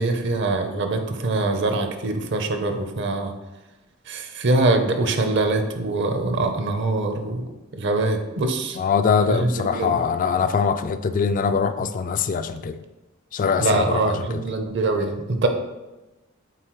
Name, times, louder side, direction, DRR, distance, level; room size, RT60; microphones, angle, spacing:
voice 1, 0.0-3.3 4.1-7.5 7.8-8.8 9.3-9.9 13.6-15.5, right 2 dB, 60° right, 6 dB, 0.7 m, -23 dB
voice 2, 8.7-12.8 13.3-14.4, left 6 dB, 40° left, 10 dB, 0.3 m, -23 dB
7.8 x 4.2 x 3.1 m, 1.1 s
head